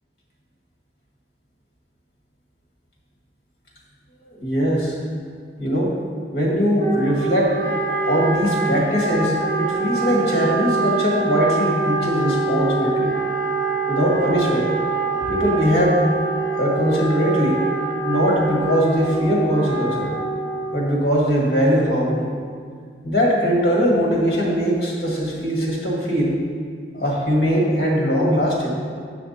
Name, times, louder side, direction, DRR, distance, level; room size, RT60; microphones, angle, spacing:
voice 1, 4.2-5.0 5.6-5.9 6.3-7.6 8.0-13.2 13.9-14.7 15.3-16.0 16.6-17.6 18.0-20.1 20.7-22.3 23.0-26.4 26.9-28.8, equal, 55° left, -3 dB, 1.8 m, -20 dB
Wind instrument woodwind instrument, 6.8-20.8, right 4 dB, 55° right, 2.1 m, -25 dB
7.4 x 5.8 x 4.2 m, 2.1 s
head